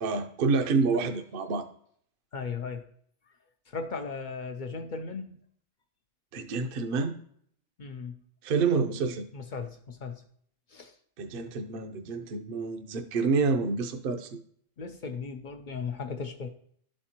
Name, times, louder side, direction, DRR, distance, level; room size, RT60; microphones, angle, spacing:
voice 1, 0.0-1.7 6.3-7.2 8.4-9.2 11.2-14.3, right 4 dB, 55° right, 7 dB, 0.7 m, -28 dB
voice 2, 2.3-2.8 3.7-5.4 7.8-8.2 9.3-10.2 10.7-11.0 14.8-16.5, left 5 dB, 55° left, 6 dB, 0.5 m, -37 dB
12.0 x 4.3 x 2.8 m, 0.63 s
omnidirectional pair, 1.3 m